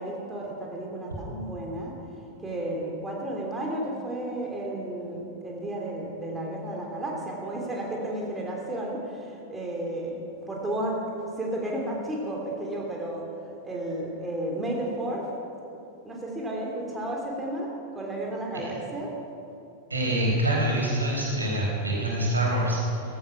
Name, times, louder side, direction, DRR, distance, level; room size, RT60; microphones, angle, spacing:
voice 1, 0.0-2.0 2.4-11.0 11.4-13.3 13.6-15.3 16.0-19.1, right 1 dB, 10° right, -2 dB, 3.2 m, -32 dB
voice 2, 19.9-23.0, right 1 dB, 80° right, -2 dB, 4.3 m, -25 dB
16.0 x 15.0 x 5.9 m, 2.6 s
figure-of-eight pair, 90°, 0 cm